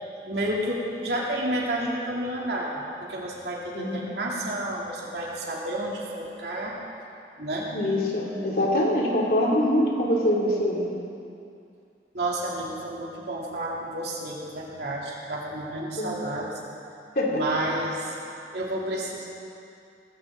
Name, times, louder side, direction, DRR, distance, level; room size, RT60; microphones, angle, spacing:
voice 1, 0.2-6.7 7.4-7.7 12.1-16.6 17.3-18.2 18.5-19.3, right 1 dB, 70° right, -4 dB, 2.8 m, -30 dB
voice 2, 3.7-4.1 7.7-10.9 16.0-16.1 17.2-17.4, left 1 dB, 55° left, -3 dB, 2.8 m, -24 dB
19.0 x 16.0 x 3.8 m, 2.6 s
head